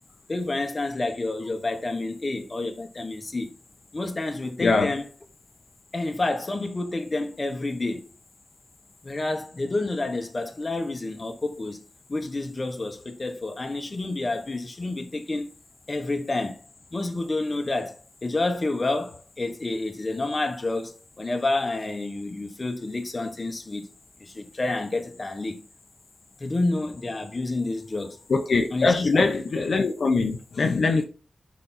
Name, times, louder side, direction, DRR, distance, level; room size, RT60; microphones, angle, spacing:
voice 1, 0.3-3.5 3.9-5.1 5.9-8.0 9.0-11.8 12.1-15.5 15.9-16.6 16.9-23.9 24.2-25.6 26.4-28.2 28.7-29.4, left 2 dB, 30° left, 1.3 m, -29 dB
voice 2, 4.6-4.9 28.3-31.0, left 3 dB, 65° left, 0.9 m, -22 dB
6.7 x 5.3 x 4.2 m
wide cardioid pair, 145°, 0 cm